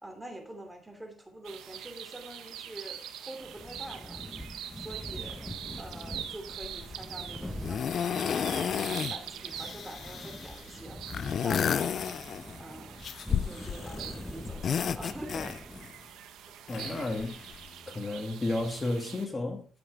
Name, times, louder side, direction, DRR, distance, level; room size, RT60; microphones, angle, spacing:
voice 1, 0.0-4.2 4.8-5.4 5.8-11.0 11.4-12.0 12.6-13.1 13.4-15.5 16.5-16.6, right 1 dB, 10° right, 2.9 m, -45 dB
sound 1, 1.4-19.3, right 10 dB, 85° right, 1.4 m, -44 dB
sound 2, 3.4-16.1, left 1 dB, 10° left, 1.3 m, -44 dB
sound 3, 6.6-7.0 7.6-9.2 9.5-10.6 11.1-12.6 13.0-14.1 14.4-15.9 16.7-17.7 18.6-18.7, left 8 dB, 55° left, 0.5 m, -32 dB
voice 2, 16.7-17.4 17.9-19.7, left 2 dB, 25° left, 2.3 m, -32 dB
12.0 x 7.8 x 3.5 m
cardioid pair, 90°, 0 cm